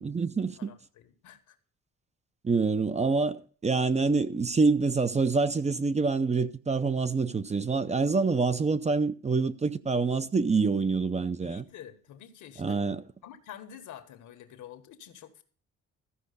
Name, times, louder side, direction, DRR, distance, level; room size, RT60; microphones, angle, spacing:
voice 1, 0.0-0.7 2.4-11.6 12.6-13.0, right 4 dB, 25° right, 0.6 m, -26 dB
voice 2, 0.6-1.6 11.4-12.9 13.2-15.4, left 10 dB, 80° left, 1.6 m, -48 dB
14.0 x 5.1 x 6.7 m
cardioid pair, 90°, 30 cm